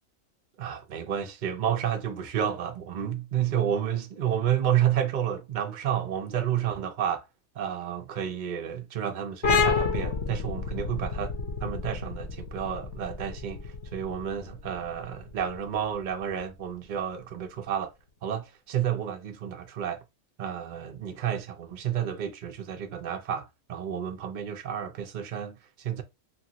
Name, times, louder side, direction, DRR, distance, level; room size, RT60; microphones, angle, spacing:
voice 1, 0.6-7.2 7.5-11.3 11.6-17.9 18.2-20.0 20.4-26.0, right 9 dB, 55° right, 0.5 m, -30 dB
sound 1, 9.4-16.7, left 5 dB, 60° left, 0.9 m, -30 dB
2.9 x 2.5 x 2.8 m
omnidirectional pair, 1.4 m